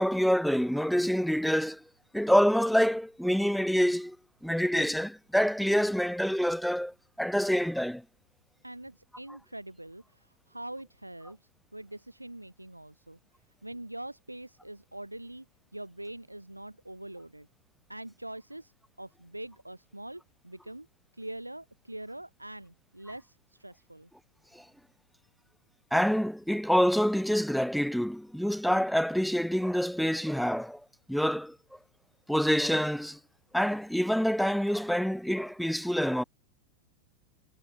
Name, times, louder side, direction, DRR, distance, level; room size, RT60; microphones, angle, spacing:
voice 1, 0.0-1.8 2.1-4.2 4.4-8.0 25.9-30.8 31.1-31.6 32.3-33.2 33.5-36.2, equal, ahead, 2.6 m, -26 dB
voice 2, 8.6-13.2 13.6-15.5 15.7-17.5 17.9-18.7 19.0-20.9 21.1-24.1, right 1 dB, 85° right, 7.1 m, -43 dB
figure-of-eight pair, 90°, 0 cm